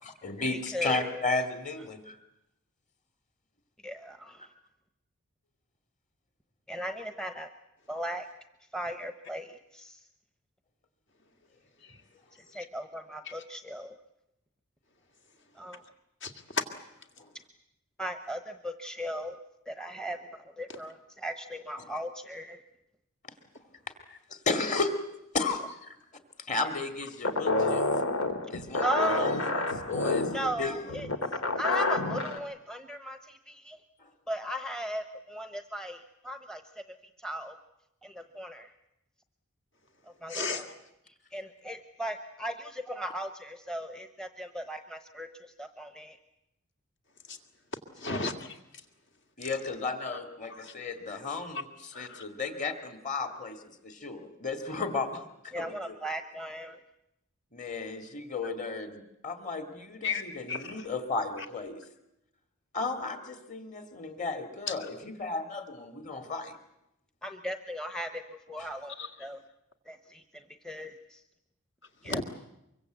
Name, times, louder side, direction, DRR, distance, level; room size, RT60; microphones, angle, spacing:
voice 1, 0.0-2.2 17.2-17.3 21.8-22.0 23.2-23.3 24.1-25.1 25.3-26.0 26.4-27.9 28.5-30.9 34.0-34.1 49.4-56.0 57.5-61.8 62.7-66.6 68.6-68.7, left 3 dB, 35° left, 6 dB, 2.4 m, -34 dB
voice 2, 0.7-1.2 3.8-4.4 6.7-7.5 7.9-8.3 8.7-10.0 12.5-13.9 15.6-15.8 18.0-19.4 19.7-20.2 20.6-22.6 28.8-29.3 30.3-31.1 31.6-33.8 34.3-36.6 37.2-37.6 38.0-38.7 40.2-40.6 41.3-46.2 48.1-48.2 55.5-56.8 67.2-68.2 68.5-69.4 69.9-70.2 70.6-71.2 72.0-72.2, equal, 5° left, 7 dB, 0.9 m, -37 dB
voice 3, 16.2-16.6 40.3-40.7 47.3-47.4 48.0-48.6 50.6-50.7 51.9-52.2 60.0-60.2 60.5-60.6 64.7-64.8 69.0-69.1 72.0-72.2, left 4 dB, 60° left, 5 dB, 2.2 m, -33 dB
sound 1, 27.2-32.4, left 2 dB, 80° left, 2.1 m, -29 dB
24.0 x 23.5 x 8.1 m, 0.86 s
head